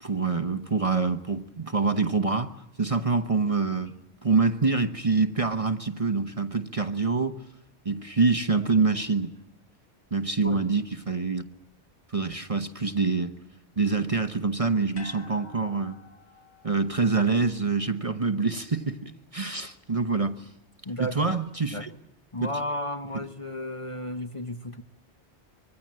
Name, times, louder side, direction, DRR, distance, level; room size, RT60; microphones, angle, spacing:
voice 1, 0.0-3.9 4.2-7.4 7.8-9.3 10.1-11.4 12.1-13.3 13.8-15.9 16.6-20.5 21.0-21.9 22.4-22.5, right 4 dB, 35° right, 1.0 m, -26 dB
sound 1, 14.9-19.3 19.6-19.7, left 4 dB, 70° left, 3.5 m, -52 dB
voice 2, 20.8-21.3 21.7-21.9 22.3-24.8, left 1 dB, 30° left, 1.1 m, -33 dB
25.5 x 23.5 x 7.6 m
omnidirectional pair, 1.1 m